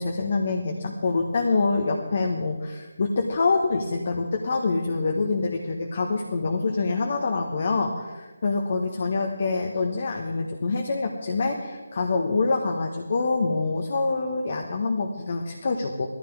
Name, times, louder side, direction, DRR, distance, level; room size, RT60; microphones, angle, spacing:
voice 1, 0.0-16.1, left 3 dB, 45° left, 2 dB, 1.5 m, -26 dB
19.0 x 14.5 x 3.7 m, 1.2 s
figure-of-eight pair, 155°, 0 cm